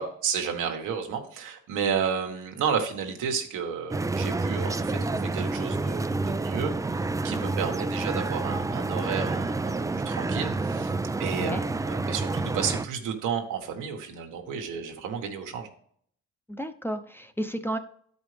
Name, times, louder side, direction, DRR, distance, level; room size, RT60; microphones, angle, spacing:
voice 1, 0.0-10.9 11.2-15.7, right 6 dB, 85° right, 3 dB, 1.5 m, -32 dB
sound 1, 3.9-12.9, right 3 dB, 10° right, 0.3 m, -29 dB
voice 2, 11.4-11.7 16.5-17.8, right 1 dB, 5° left, 7 dB, 0.8 m, -33 dB
12.0 x 5.1 x 3.3 m, 0.62 s
cardioid pair, 90°, 30 cm